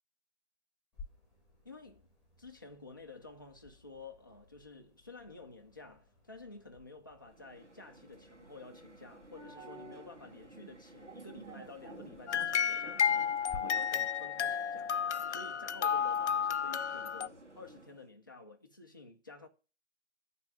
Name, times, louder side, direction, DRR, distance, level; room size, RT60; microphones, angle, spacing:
sound 1, 0.9-13.6, left 3 dB, ahead, 1.9 m, -58 dB
voice 1, 1.6-2.1 2.4-14.9 15.3-19.5, left 3 dB, 20° left, 0.4 m, -51 dB
sound 2, 7.2-18.1, right 2 dB, 85° right, 1.8 m, -53 dB
sound 3, 12.3-17.3, left 8 dB, 75° left, 0.5 m, -32 dB
10.0 x 3.5 x 6.9 m
figure-of-eight pair, 140°, 35 cm